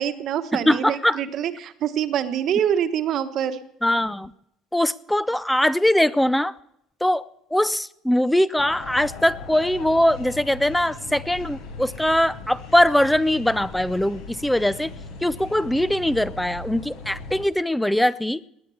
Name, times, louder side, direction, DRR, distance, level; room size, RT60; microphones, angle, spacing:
voice 1, 0.0-3.6, right 9 dB, 50° right, 10 dB, 1.2 m, -25 dB
voice 2, 0.5-1.2 3.8-4.3 4.7-6.5 7.0-7.2 7.5-14.9 15.2-18.4, left 1 dB, 5° left, 18 dB, 0.5 m, -21 dB
sound 1, 8.6-17.5, left 4 dB, 80° left, 5.0 m, -39 dB
19.5 x 9.3 x 7.0 m, 0.76 s
cardioid pair, 140°, 0 cm